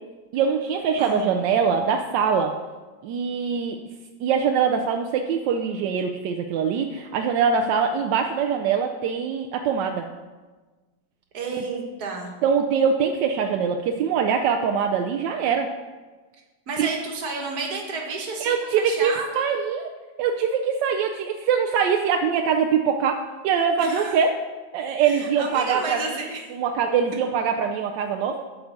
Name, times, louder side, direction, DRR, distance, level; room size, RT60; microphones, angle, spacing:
voice 1, 0.3-2.5 3.0-3.8 4.2-10.0 12.4-15.7 16.8-16.9 18.4-19.9 20.2-24.3 24.7-26.3 26.5-28.4, right 6 dB, 85° right, 3 dB, 1.2 m, -23 dB
voice 2, 11.3-12.3 16.7-19.5 23.8-24.2 25.0-26.4, right 3 dB, 60° right, 1 dB, 1.8 m, -31 dB
8.3 x 4.7 x 6.5 m, 1.3 s
omnidirectional pair, 1.9 m